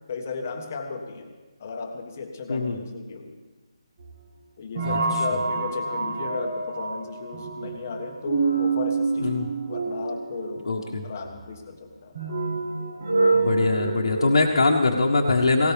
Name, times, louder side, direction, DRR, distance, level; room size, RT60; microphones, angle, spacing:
voice 1, 0.1-1.3 1.6-3.3 4.6-9.3 9.7-10.7 11.0-12.1, left 4 dB, 25° left, 4 dB, 1.4 m, -34 dB
sound 1, 4.0-14.5, right 3 dB, 30° right, 1.4 m, -27 dB
voice 2, 10.6-11.0 13.3-15.7, left 3 dB, 65° left, -2 dB, 1.6 m, -22 dB
19.0 x 18.0 x 3.5 m, 1.2 s
hypercardioid pair, 175°, 3 cm